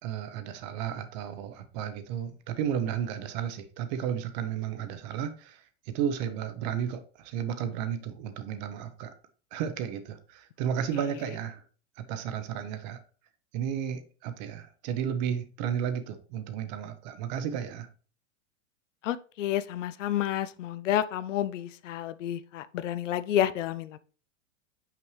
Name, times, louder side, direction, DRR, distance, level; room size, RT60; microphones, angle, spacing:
voice 1, 0.0-9.1 9.5-11.6 12.0-13.0 13.5-17.9, right 8 dB, 35° right, 0.7 m, -33 dB
voice 2, 19.0-24.0, left 11 dB, 75° left, 0.6 m, -30 dB
5.8 x 5.3 x 3.1 m
supercardioid pair, 150°, 38 cm